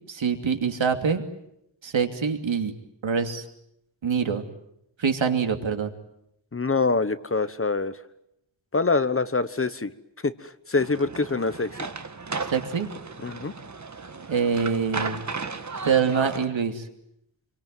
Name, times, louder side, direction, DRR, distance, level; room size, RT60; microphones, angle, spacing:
voice 1, 0.1-1.2 1.8-2.7 3.0-3.4 4.0-4.4 5.0-5.9 12.5-12.9 14.3-15.2 15.8-16.9, right 6 dB, 90° right, 6 dB, 2.9 m, -25 dB
voice 2, 6.5-8.0 8.7-9.9 10.2-11.7 13.2-13.5, left 3 dB, 30° left, 13 dB, 1.1 m, -25 dB
sound 1, 10.8-16.5, right 4 dB, 40° right, 1.7 m, -35 dB
27.5 x 23.5 x 9.2 m, 0.79 s
wide cardioid pair, 130°, 45 cm